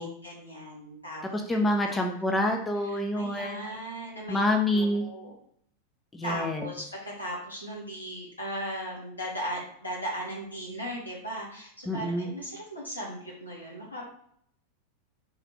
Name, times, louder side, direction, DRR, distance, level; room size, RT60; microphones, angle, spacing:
voice 1, 0.0-1.2 1.8-2.0 2.8-4.4 4.7-5.3 6.2-14.1, equal, 85° left, -4 dB, 1.3 m, -37 dB
voice 2, 1.3-3.7 4.3-5.1 6.1-6.7 11.9-12.3, left 1 dB, 10° left, 2 dB, 0.5 m, -27 dB
3.8 x 2.4 x 3.4 m, 0.68 s
figure-of-eight pair, 90°, 0 cm